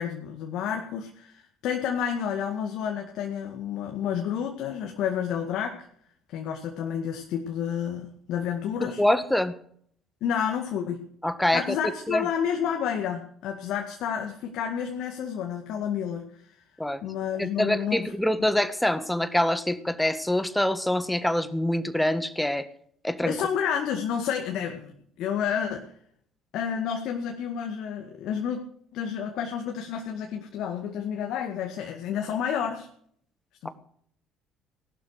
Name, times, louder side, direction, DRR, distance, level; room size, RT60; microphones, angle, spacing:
voice 1, 0.0-5.8 6.3-9.0 10.2-11.0 11.5-16.5 17.0-18.1 18.4-18.5 23.3-24.9 25.2-25.9 26.5-28.6 28.9-32.9 33.6-33.7, left 8 dB, 60° left, 3 dB, 2.0 m, -30 dB
voice 2, 9.0-9.5 11.2-11.6 12.1-12.3 16.8-17.0 17.4-22.7 23.0-23.4, left 1 dB, 5° left, 11 dB, 1.7 m, -25 dB
18.0 x 12.0 x 6.6 m, 0.63 s
figure-of-eight pair, 55°, 0 cm